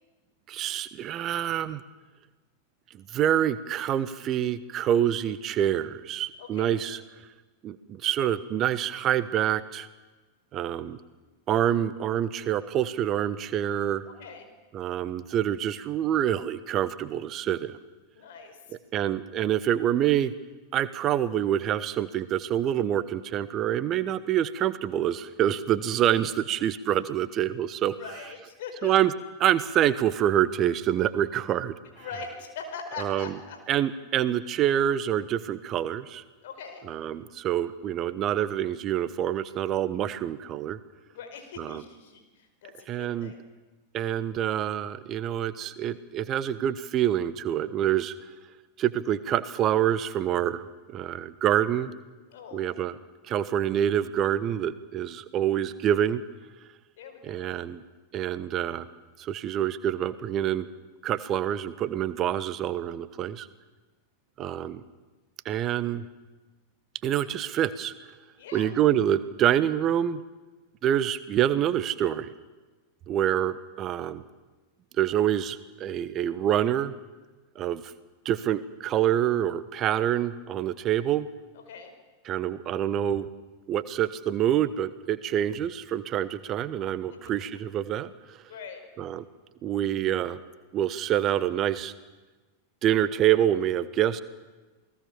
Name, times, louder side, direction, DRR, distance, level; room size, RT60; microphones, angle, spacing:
voice 1, 0.5-1.8 2.9-7.0 7.6-9.9 10.5-11.0 11.5-14.0 14.7-17.8 18.9-20.3 20.7-27.9 28.8-29.1 29.4-31.7 33.0-33.3 33.7-36.2 36.9-40.8 41.6-41.8 42.9-43.3 43.9-48.1 48.8-50.6 50.9-51.9 52.5-53.0 53.3-56.2 57.2-57.8 58.1-58.9 59.2-60.7 61.0-63.5 64.4-64.8 65.4-66.1 67.0-67.9 68.5-70.2 70.8-72.3 73.1-74.2 75.0-76.9 77.5-77.9 78.2-81.3 82.2-83.3 83.7-88.4 89.0-89.2 89.6-90.4 90.7-91.9 92.8-94.2, right 11 dB, 30° right, 15 dB, 1.2 m, -26 dB
voice 2, 6.4-6.8 14.0-14.5 18.1-18.6 28.0-28.9 32.0-33.6 36.4-36.8 41.1-43.4 52.3-52.7 57.0-57.5 68.4-68.7 81.7-81.9 87.1-87.3 88.5-88.8, left 5 dB, 55° left, 6 dB, 4.9 m, -42 dB
28.5 x 19.0 x 7.2 m, 1.2 s
figure-of-eight pair, 90°, 0 cm